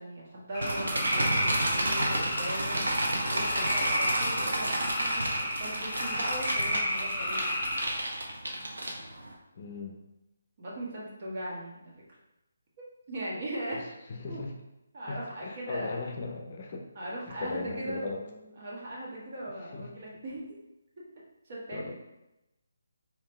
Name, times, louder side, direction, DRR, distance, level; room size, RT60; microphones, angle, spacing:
voice 1, 0.0-2.8 3.3-7.5 10.6-11.8 13.1-13.8 14.3-14.4 14.9-16.0 17.0-20.4 21.0-21.1 21.5-21.9, right 1 dB, 45° right, -5 dB, 1.3 m, -39 dB
sound 1, 0.5-8.0, equal, 20° left, 1.0 m, -32 dB
sound 2, 0.6-9.3, right 1 dB, 85° right, 0.8 m, -31 dB
voice 2, 9.5-10.0 13.7-14.5 15.1-16.9 17.3-18.2 19.7-19.9 21.7-21.9, left 3 dB, 45° left, 2 dB, 0.5 m, -38 dB
3.7 x 3.0 x 3.3 m, 0.95 s
figure-of-eight pair, 160°, 0 cm